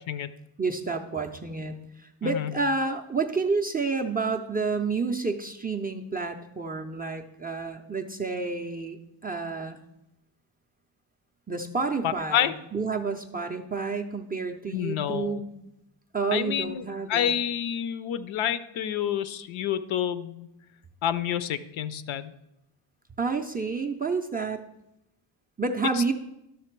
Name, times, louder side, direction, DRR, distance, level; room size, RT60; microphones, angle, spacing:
voice 1, 0.6-9.0 9.2-9.8 11.5-15.5 16.1-17.3 23.2-24.6 25.6-26.1, right 4 dB, 20° right, 2 dB, 0.3 m, -29 dB
voice 2, 12.0-12.5 14.7-15.4 16.3-16.8 17.1-20.5 21.0-22.3, left 10 dB, 75° left, 14 dB, 0.7 m, -28 dB
12.0 x 6.5 x 4.5 m, 0.87 s
wide cardioid pair, 180°, 48 cm